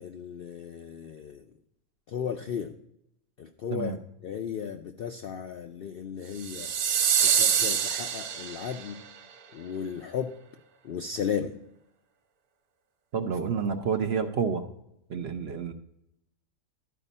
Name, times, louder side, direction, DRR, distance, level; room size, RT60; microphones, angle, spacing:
voice 1, 0.0-1.4 2.1-2.8 3.4-4.0 4.2-6.7 7.2-9.1 9.5-10.3 10.8-11.6, left 7 dB, 65° left, 6 dB, 0.5 m, -35 dB
sound 1, 6.4-8.9, right 8 dB, 85° right, 1.2 m, -25 dB
voice 2, 13.1-14.6 15.1-15.7, right 6 dB, 55° right, 7 dB, 0.8 m, -29 dB
12.0 x 5.0 x 5.4 m, 0.79 s
omnidirectional pair, 1.5 m